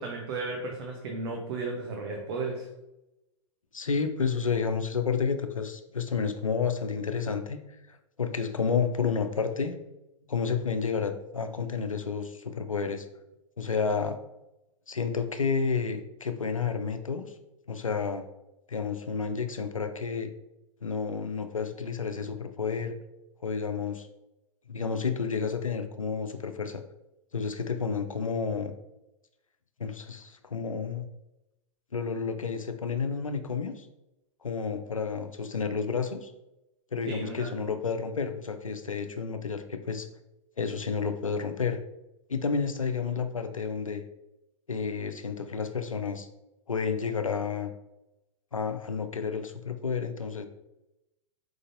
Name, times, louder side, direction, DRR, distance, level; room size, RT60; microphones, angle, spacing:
voice 1, 0.0-2.7 37.1-37.5, right 3 dB, 50° right, 1 dB, 0.7 m, -34 dB
voice 2, 3.7-7.6 7.9-9.7 10.3-13.1 13.6-14.2 14.9-17.3 17.7-18.2 18.7-20.3 20.8-22.9 23.4-24.1 24.7-26.8 27.3-28.7 29.8-31.1 31.9-33.9 34.4-36.3 36.9-40.1 40.6-41.8 42.3-44.0 44.7-46.3 46.7-47.7 48.5-50.4, left 5 dB, 90° left, 8 dB, 0.4 m, -30 dB
4.7 x 3.8 x 2.6 m, 0.93 s
figure-of-eight pair, 100°, 17 cm